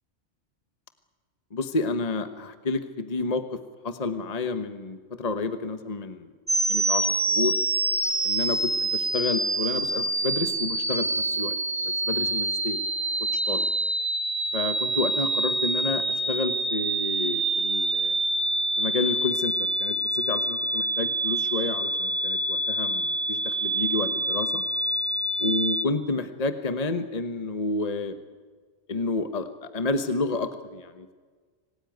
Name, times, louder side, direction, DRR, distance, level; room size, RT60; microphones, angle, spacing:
voice 1, 1.5-3.6 3.8-6.3 6.7-7.5 8.2-11.6 11.8-12.8 13.3-13.7 14.5-18.2 18.8-24.6 25.4-28.2 28.9-31.1, left 3 dB, 35° left, 9 dB, 1.2 m, -30 dB
sound 1, 6.5-25.8, right 2 dB, 15° right, 0.9 m, -26 dB
26.5 x 18.5 x 9.3 m, 1.5 s
omnidirectional pair, 1.2 m